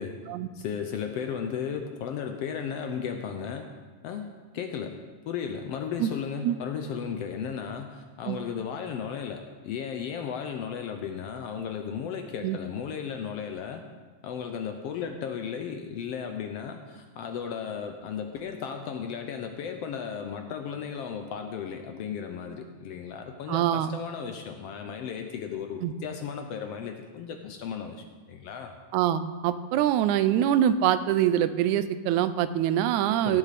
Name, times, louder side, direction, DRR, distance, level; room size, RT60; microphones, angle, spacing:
voice 1, 0.5-3.7 4.0-5.0 5.3-13.8 14.2-28.7 33.2-33.4, left 7 dB, 70° left, 5 dB, 1.6 m, -35 dB
voice 2, 23.5-23.9 25.8-25.9 28.9-33.4, right 11 dB, 85° right, 13 dB, 2.0 m, -24 dB
17.0 x 8.3 x 4.2 m, 1.4 s
omnidirectional pair, 3.4 m